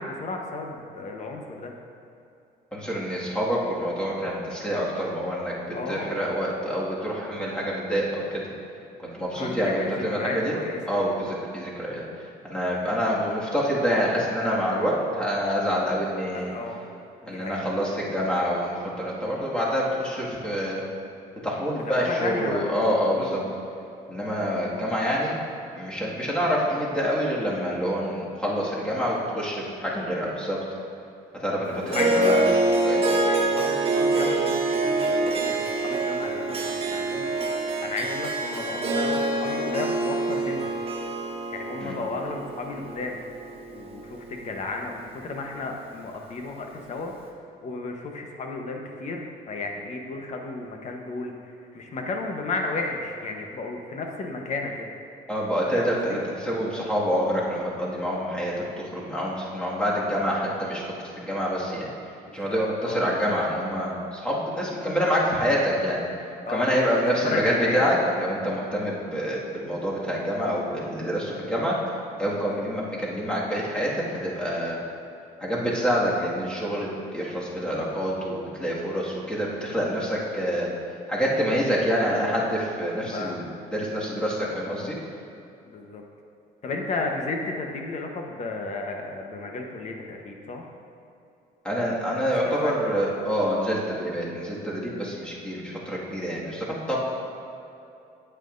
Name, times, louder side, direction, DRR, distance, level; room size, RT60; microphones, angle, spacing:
voice 1, 0.0-1.7 5.7-6.2 9.3-10.8 16.3-16.8 17.3-17.6 21.8-22.7 23.1-23.5 29.0-29.4 31.6-32.4 33.2-37.3 37.8-40.7 41.5-43.2 43.7-47.1 47.6-54.9 55.7-56.2 62.3-63.4 66.5-67.9 72.4-72.6 83.1-83.4 85.6-86.0 86.6-90.7 92.6-93.3, left 3 dB, 45° left, 2 dB, 1.1 m, -33 dB
voice 2, 2.7-8.4 9.0-10.5 10.9-12.0 12.4-16.5 17.2-20.8 21.4-23.4 24.1-25.3 25.7-30.6 31.4-32.4 32.8-33.1 41.8-41.9 55.3-60.8 61.2-61.9 62.3-66.0 66.5-71.8 72.2-74.8 75.4-80.7 81.1-83.4 83.7-85.0 91.6-97.0, equal, 5° left, -6 dB, 2.0 m, -27 dB
Harp, 31.9-44.4, right 2 dB, 35° right, 1.1 m, -25 dB
9.0 x 9.0 x 2.6 m, 2.7 s
cardioid pair, 110°, 17 cm